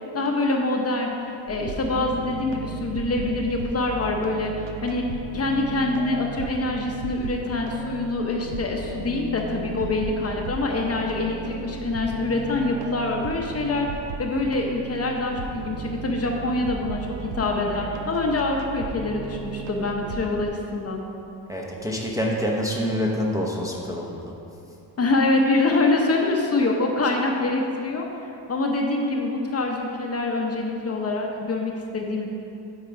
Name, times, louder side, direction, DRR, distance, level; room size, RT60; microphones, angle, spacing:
voice 1, 0.1-5.1 5.3-13.9 14.2-21.0 25.0-32.2, left 2 dB, 35° left, 1 dB, 0.8 m, -25 dB
sound 1, 1.5-20.5, right 5 dB, 80° right, 0.7 m, -35 dB
voice 2, 21.5-24.3, equal, 10° right, -3 dB, 0.7 m, -26 dB
8.7 x 4.5 x 5.0 m, 2.7 s
cardioid pair, 135°, 43 cm